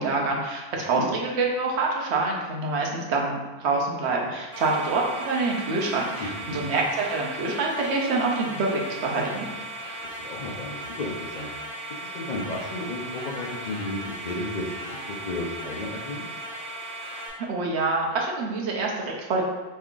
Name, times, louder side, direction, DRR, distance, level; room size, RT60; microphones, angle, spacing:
voice 1, 0.0-9.5 17.4-19.4, right 3 dB, 85° right, -1 dB, 1.0 m, -26 dB
sound 1, 4.5-17.3, right 1 dB, 45° right, 1.6 m, -37 dB
voice 2, 6.2-6.6 10.0-11.5 12.1-16.2, left 2 dB, 50° left, -3 dB, 0.6 m, -33 dB
3.4 x 3.2 x 3.7 m, 1.3 s
omnidirectional pair, 1.1 m